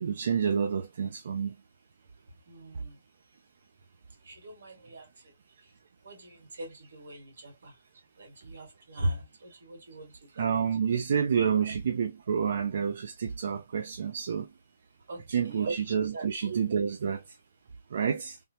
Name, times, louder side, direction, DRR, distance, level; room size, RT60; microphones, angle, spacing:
voice 1, 0.0-1.5 10.4-14.5 15.3-17.2 17.9-18.4, right 7 dB, 65° right, 0.4 m, -28 dB
voice 2, 2.5-3.0 4.2-5.3 5.6-5.7 6.0-7.8 8.2-10.5 15.1-16.3, right 1 dB, 85° right, 1.9 m, -40 dB
3.5 x 2.0 x 2.8 m
hypercardioid pair, 155°, 0 cm